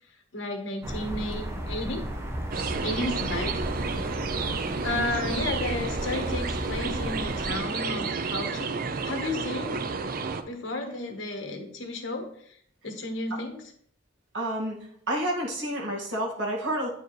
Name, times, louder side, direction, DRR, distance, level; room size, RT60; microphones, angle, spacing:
voice 1, 0.3-2.1 2.8-3.6 4.8-9.8 10.4-12.6 12.8-13.6, left 2 dB, 75° left, 4 dB, 1.3 m, -33 dB
sound 1, 0.8-7.6, equal, 15° right, 0.8 m, -34 dB
sound 2, 2.5-10.4, right 4 dB, 45° right, 0.4 m, -31 dB
voice 2, 2.9-3.2 4.7-5.1 13.3-13.4 14.3-14.8 15.1-16.9, right 1 dB, 70° right, -3 dB, 2.0 m, -30 dB
8.8 x 4.5 x 3.2 m, 0.63 s
head